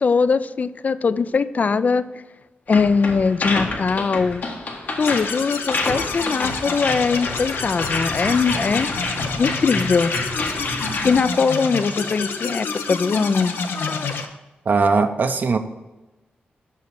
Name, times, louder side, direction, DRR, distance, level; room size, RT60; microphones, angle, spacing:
voice 1, 0.0-2.0 2.7-4.4 5.0-8.9 9.4-10.1 11.0-14.3, left 5 dB, 45° left, 15 dB, 0.4 m, -21 dB
sound 1, 2.7-11.2, left 2 dB, 65° left, 1.4 m, -28 dB
sound 2, 5.0-14.3, left 5 dB, 85° left, 0.7 m, -28 dB
voice 2, 14.7-15.6, right 4 dB, 55° right, 7 dB, 0.6 m, -19 dB
6.3 x 5.6 x 6.0 m, 1.1 s
cardioid pair, 80°, 4 cm